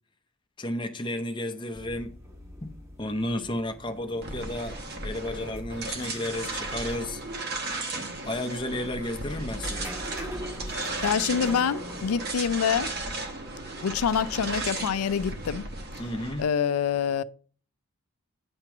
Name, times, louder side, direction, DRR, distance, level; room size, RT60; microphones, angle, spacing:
voice 1, 0.6-2.1 2.6-7.2 8.2-10.0 16.0-16.5, left 1 dB, 20° left, 0.6 m, -32 dB
sound 1, 1.7-13.4, equal, 15° right, 0.9 m, -42 dB
sound 2, 4.2-16.4, right 2 dB, 45° right, 1.0 m, -35 dB
voice 2, 11.0-12.9 13.8-15.7 16.4-17.2, left 7 dB, 85° left, 0.4 m, -26 dB
8.7 x 3.0 x 5.9 m
head